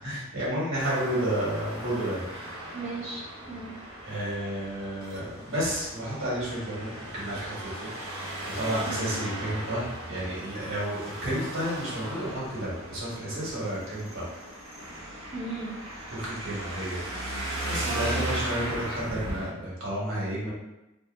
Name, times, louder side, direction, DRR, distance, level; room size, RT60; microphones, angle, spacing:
voice 1, 0.0-2.3 4.0-7.9 8.4-14.3 16.1-17.0 17.7-20.5, right 1 dB, 70° right, -6 dB, 1.2 m, -31 dB
Traffic noise roadway noise, 0.8-19.5, right 1 dB, 85° right, 0.9 m, -37 dB
voice 2, 2.7-3.7 8.9-9.1 15.3-15.8 17.9-18.3, right 3 dB, 35° right, -8 dB, 0.5 m, -36 dB
2.6 x 2.6 x 2.4 m, 0.95 s
head